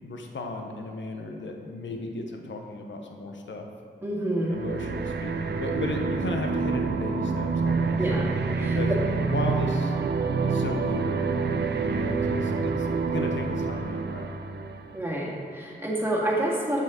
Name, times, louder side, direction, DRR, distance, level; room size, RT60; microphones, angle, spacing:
voice 1, 0.0-3.7 4.5-8.0 8.6-9.9 10.4-11.2 11.9-14.4, left 2 dB, 75° left, 3 dB, 0.8 m, -35 dB
voice 2, 4.0-4.6 8.0-8.8 14.9-16.8, right 1 dB, 10° right, -4 dB, 1.7 m, -28 dB
sound 1, 4.5-15.0, right 4 dB, 60° right, 0.5 m, -27 dB
7.6 x 5.7 x 3.7 m, 2.4 s
cardioid pair, 55°, 20 cm